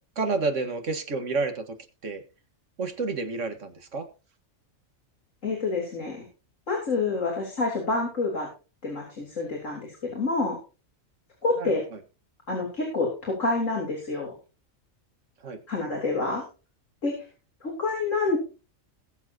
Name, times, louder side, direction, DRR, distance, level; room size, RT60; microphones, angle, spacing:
voice 1, 0.2-1.8 2.0-2.2 2.8-4.1 11.6-11.8 15.4-15.6, right 3 dB, 65° right, 7 dB, 2.0 m, -29 dB
voice 2, 5.4-6.2 6.7-8.5 8.8-10.6 11.4-11.8 12.5-14.3 15.7-16.4 17.0-17.1 17.6-18.4, left 3 dB, 70° left, -1 dB, 4.1 m, -27 dB
21.0 x 7.3 x 2.9 m, 0.32 s
omnidirectional pair, 1.4 m